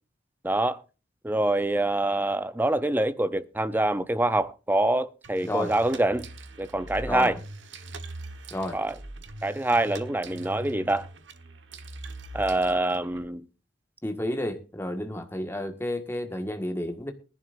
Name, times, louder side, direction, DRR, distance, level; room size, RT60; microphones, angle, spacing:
voice 1, 0.4-0.8 1.2-6.3 6.6-7.4 8.7-8.9 9.4-11.0 12.3-13.4, right 1 dB, 10° right, 0.6 m, -25 dB
sound 1, 5.2-13.2, right 2 dB, 70° right, 1.4 m, -42 dB
voice 2, 7.0-7.3 8.5-8.8 14.0-17.1, left 1 dB, 15° left, 1.7 m, -31 dB
20.5 x 11.0 x 2.6 m
head